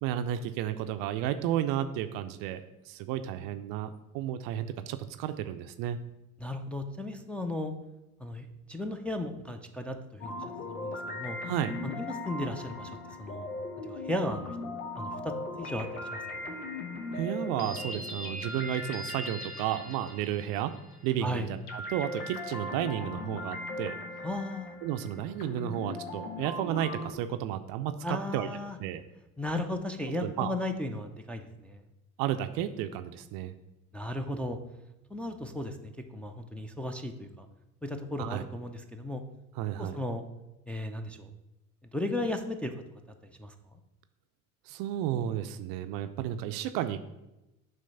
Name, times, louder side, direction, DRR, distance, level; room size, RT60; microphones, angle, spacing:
voice 1, 0.0-6.0 11.4-11.7 17.1-20.8 21.0-23.9 24.8-28.5 28.8-29.0 30.2-30.5 32.2-33.5 38.2-38.4 39.6-40.0 44.7-47.0, right 11 dB, 50° right, 9 dB, 0.5 m, -32 dB
voice 2, 6.4-7.7 8.2-11.4 11.8-13.5 13.8-14.5 15.0-16.6 21.2-21.5 24.2-24.7 28.0-28.8 29.4-31.8 33.9-34.6 35.1-37.5 37.8-39.2 39.8-40.2 40.7-41.3 41.9-42.7 43.4-43.5, left 1 dB, 5° left, 2 dB, 0.5 m, -35 dB
sound 1, 10.2-21.1 21.7-27.1, left 2 dB, 85° left, 1.0 m, -39 dB
7.5 x 3.2 x 5.5 m, 0.94 s
hypercardioid pair, 65°, 43 cm